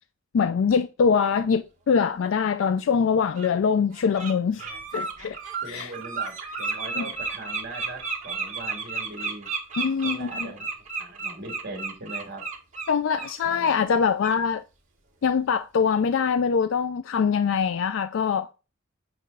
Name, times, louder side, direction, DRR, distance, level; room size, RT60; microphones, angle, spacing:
voice 1, 0.3-4.6 4.9-5.4 5.7-5.9 7.0-7.1 9.8-10.5 12.9-14.6 15.2-18.5, left 6 dB, 70° left, 0.4 m, -23 dB
Bird, 2.5-2.6 3.3-3.5 3.9-4.3 4.6-13.3 13.6-13.8 14.2-14.4, right 4 dB, 40° right, 1.9 m, -32 dB
voice 2, 5.6-9.5 10.0-10.7 11.0-12.4 13.4-14.0, right 2 dB, 55° right, 1.9 m, -40 dB
7.7 x 3.1 x 5.3 m
head